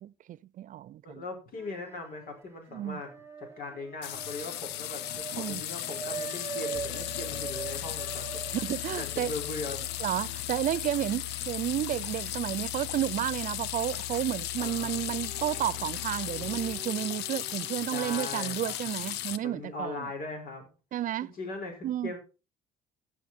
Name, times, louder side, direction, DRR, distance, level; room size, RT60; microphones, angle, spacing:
voice 1, 0.0-1.2 2.7-3.0 5.3-5.6 8.5-9.3 10.0-20.1 20.9-21.3 21.8-22.1, right 12 dB, 50° right, 0.4 m, -32 dB
voice 2, 1.0-3.1 3.6-8.4 8.9-9.8 14.6-14.9 17.9-18.7 19.4-20.7 21.2-22.2, left 3 dB, 60° left, 5.3 m, -39 dB
sound 1, 1.6-2.4 2.7-13.0 13.4-13.5 14.6-18.0, right 6 dB, 15° right, 1.2 m, -44 dB
sound 2, 4.0-19.4, left 13 dB, 90° left, 0.7 m, -36 dB
sound 3, 6.7-16.8, left 17 dB, 40° left, 6.6 m, -44 dB
15.0 x 6.6 x 4.3 m
cardioid pair, 110°, 17 cm